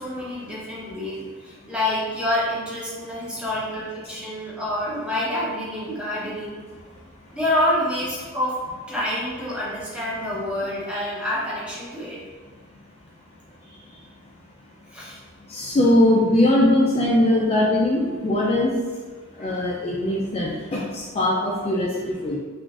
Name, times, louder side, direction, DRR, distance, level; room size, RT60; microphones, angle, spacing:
voice 1, 0.0-6.6 7.3-8.6 8.9-12.2 14.9-15.2 19.4-19.7, left 1 dB, 5° right, -7 dB, 0.6 m, -27 dB
voice 2, 15.5-18.7 19.4-22.4, left 1 dB, 30° left, -4 dB, 0.3 m, -20 dB
3.8 x 2.5 x 2.4 m, 1.4 s
head